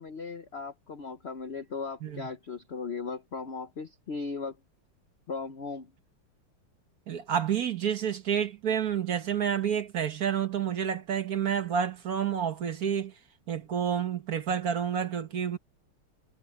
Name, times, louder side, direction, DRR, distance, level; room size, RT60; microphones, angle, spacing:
voice 1, 0.0-4.6 5.3-5.9, left 4 dB, 85° left, 0.5 m, -37 dB
voice 2, 7.1-13.1 13.5-15.6, right 8 dB, 50° right, 1.4 m, -29 dB
omnidirectional pair, 2.4 m